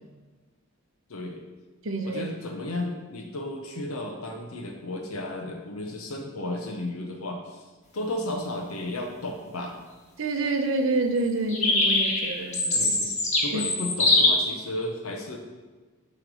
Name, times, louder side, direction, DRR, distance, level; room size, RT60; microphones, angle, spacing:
voice 1, 1.1-1.4 2.0-7.6 7.9-9.8 12.7-13.1 13.4-15.4, left 1 dB, 80° left, 2 dB, 0.8 m, -33 dB
voice 2, 1.8-2.2 10.2-12.9 13.5-13.6, right 2 dB, 65° right, 4 dB, 0.8 m, -27 dB
sound 1, 11.5-14.3, left 2 dB, 35° left, 1.2 m, -22 dB
8.8 x 3.3 x 6.2 m, 1.3 s
head